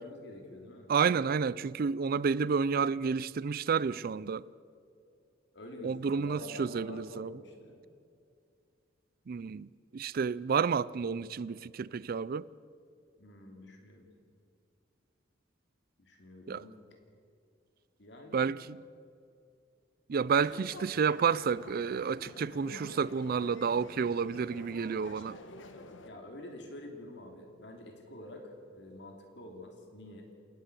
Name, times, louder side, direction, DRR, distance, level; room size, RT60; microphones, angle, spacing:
voice 1, 0.0-0.9 5.5-7.8 13.2-14.1 16.0-16.8 18.0-18.5 20.3-20.4 20.7-20.8 26.0-30.3, left 1 dB, 65° left, 2.8 m, -47 dB
voice 2, 0.9-4.4 5.8-7.3 9.3-9.7 9.9-12.4 16.5-16.6 18.3-18.8 20.1-25.4, right 6 dB, 50° right, 0.4 m, -30 dB
sound 1, 20.3-26.1, left 2 dB, 90° left, 1.4 m, -49 dB
27.5 x 11.5 x 8.2 m
head